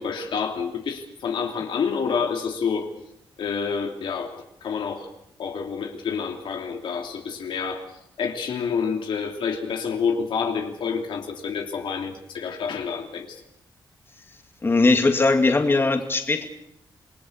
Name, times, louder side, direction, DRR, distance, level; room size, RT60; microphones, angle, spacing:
voice 1, 0.0-2.9 3.4-5.1 5.4-7.9 8.2-13.4, left 6 dB, 90° left, 3 dB, 3.0 m, -28 dB
voice 2, 14.6-16.4, left 3 dB, 30° left, 5 dB, 2.5 m, -19 dB
27.5 x 20.0 x 6.7 m, 0.78 s
wide cardioid pair, 115°, 8 cm